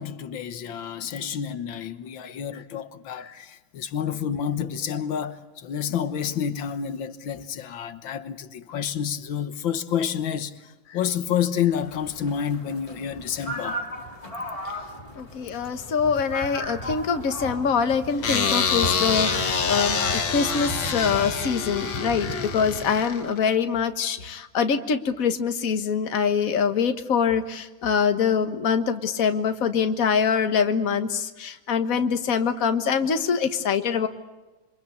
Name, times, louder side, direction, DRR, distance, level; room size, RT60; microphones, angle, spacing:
voice 1, 0.0-10.5 10.9-13.8, left 8 dB, 90° left, 1.9 m, -29 dB
sound 1, 11.7-22.9, equal, 15° left, 3.3 m, -36 dB
voice 2, 15.2-34.1, left 6 dB, 50° left, 1.7 m, -24 dB
sound 2, 18.2-23.5, left 5 dB, 70° left, 2.3 m, -26 dB
27.5 x 25.0 x 8.5 m
omnidirectional pair, 2.1 m